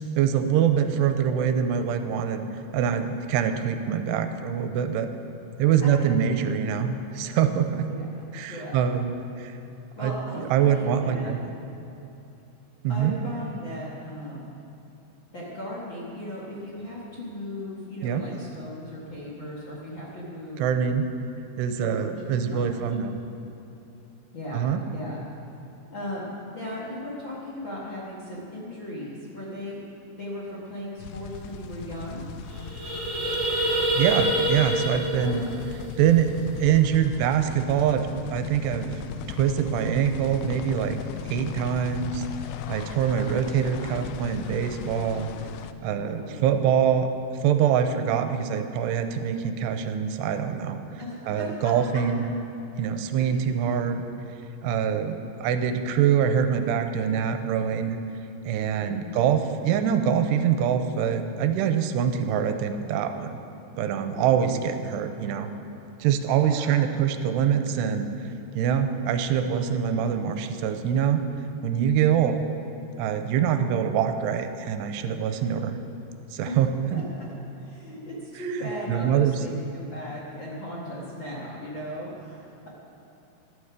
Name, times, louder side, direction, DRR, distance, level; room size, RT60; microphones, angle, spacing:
voice 1, 0.0-2.5 2.7-5.1 5.6-7.9 8.3-9.6 10.0-11.4 12.8-13.2 18.0-18.3 20.6-21.1 21.6-23.1 24.5-24.8 34.0-35.5 36.0-38.9 39.3-41.0 41.2-42.3 42.7-45.3 45.8-47.1 47.4-50.8 51.3-52.3 52.8-54.1 54.6-58.0 58.4-63.4 63.8-65.5 66.0-68.1 68.5-71.2 71.6-72.4 73.0-75.8 76.3-77.0 78.9-79.4, right 8 dB, 90° right, 8 dB, 2.8 m, -24 dB
voice 2, 3.9-4.6 7.9-8.9 9.9-11.3 12.9-14.6 15.3-20.6 21.8-22.0 22.2-22.7 24.3-24.6 24.9-25.2 25.9-29.8 30.1-32.2 35.1-35.7 45.8-46.6 51.0-51.7 58.8-59.2 64.1-64.5 66.4-66.8 76.4-82.7, equal, 55° left, -6 dB, 1.3 m, -37 dB
sound 1, 31.0-45.7, left 10 dB, 85° left, 2.1 m, -38 dB
sound 2, 31.4-31.5 31.8-32.0 32.3-36.7, right 1 dB, 35° right, 2.4 m, -27 dB
14.0 x 12.5 x 4.9 m, 2.9 s
omnidirectional pair, 4.8 m